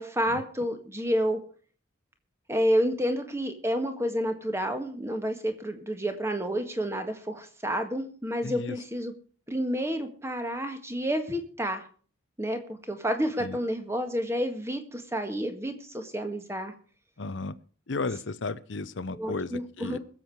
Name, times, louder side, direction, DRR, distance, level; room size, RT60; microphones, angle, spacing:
voice 1, 0.0-1.4 2.5-9.1 9.5-11.9 12.4-16.7 19.2-20.0, equal, 15° right, 6 dB, 1.6 m, -29 dB
voice 2, 8.4-8.8 13.4-13.6 17.2-17.5 17.9-20.0, left 3 dB, 65° left, 16 dB, 0.8 m, -34 dB
22.0 x 7.5 x 4.8 m, 0.42 s
head